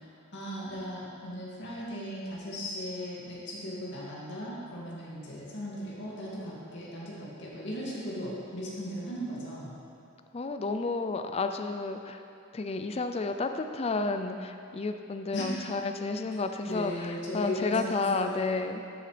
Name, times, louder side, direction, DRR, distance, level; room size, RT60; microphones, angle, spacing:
voice 1, 0.3-9.7 15.3-15.4 16.7-18.3, equal, 55° left, -6 dB, 2.2 m, -37 dB
voice 2, 10.3-12.2 12.5-18.8, left 3 dB, 30° left, 7 dB, 0.4 m, -31 dB
12.5 x 6.9 x 3.3 m, 2.5 s
head